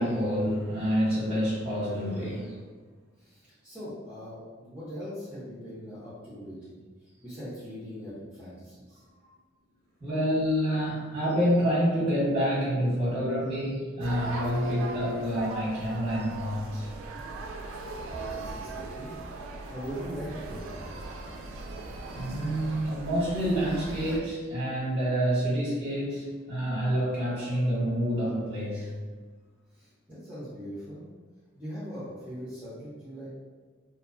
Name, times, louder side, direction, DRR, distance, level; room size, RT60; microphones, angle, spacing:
voice 1, 0.0-2.6 10.0-16.9 18.1-18.2 22.1-28.9, equal, 30° right, -8 dB, 1.0 m, -28 dB
voice 2, 3.2-6.8 7.2-9.0 17.7-19.1 19.7-21.1 29.7-31.0 31.6-33.3, equal, 5° right, -14 dB, 0.7 m, -41 dB
sound 1, 14.0-24.2, right 2 dB, 85° right, 0.3 m, -38 dB
2.6 x 2.1 x 2.4 m, 1.4 s
head